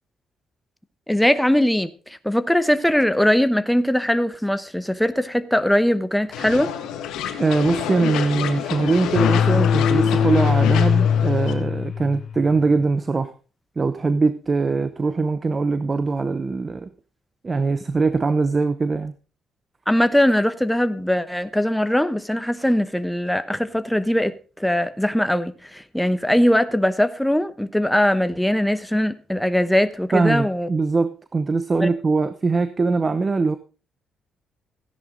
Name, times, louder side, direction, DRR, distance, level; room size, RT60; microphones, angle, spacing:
voice 1, 1.1-6.7 19.9-30.7 31.8-31.9, left 1 dB, 5° left, 1.0 m, -21 dB
sound 1, 6.3-11.5, left 9 dB, 90° left, 1.7 m, -28 dB
voice 2, 7.4-13.3 13.8-16.9 17.4-19.1 30.1-33.6, right 4 dB, 30° right, 0.8 m, -22 dB
sound 2, 9.1-12.6, left 7 dB, 60° left, 0.8 m, -20 dB
14.5 x 10.5 x 3.9 m
cardioid pair, 90°, 0 cm